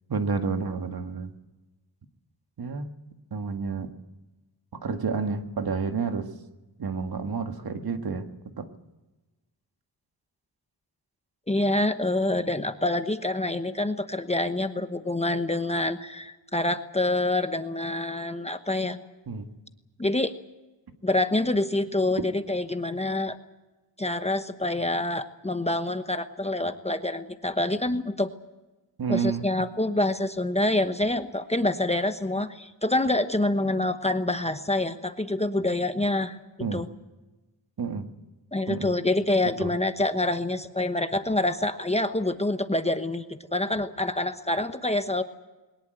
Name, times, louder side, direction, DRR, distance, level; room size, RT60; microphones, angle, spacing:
voice 1, 0.1-1.3 2.6-2.9 3.3-3.9 4.7-6.3 6.8-8.7 19.3-19.5 22.2-22.3 29.0-29.5 36.6-36.9 37.8-38.1 38.7-38.9 39.4-39.7, right 5 dB, 55° right, 6 dB, 1.9 m, -30 dB
voice 2, 11.5-19.0 20.0-20.3 21.0-23.4 24.0-28.3 29.1-36.4 36.7-36.9 38.5-45.2, left 2 dB, 15° left, 9 dB, 1.0 m, -26 dB
22.0 x 20.0 x 7.9 m, 1.1 s
wide cardioid pair, 135°, 44 cm